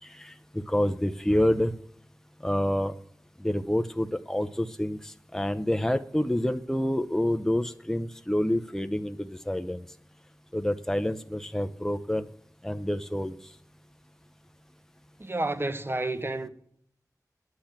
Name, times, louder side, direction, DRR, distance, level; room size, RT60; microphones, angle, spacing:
voice 1, 0.0-1.7 2.4-2.9 3.4-9.8 10.5-12.3 12.6-13.4, left 1 dB, 5° left, 0.8 m, -28 dB
voice 2, 15.2-16.5, right 2 dB, 35° right, 1.2 m, -30 dB
10.5 x 7.9 x 8.7 m
wide cardioid pair, 50°, 7 cm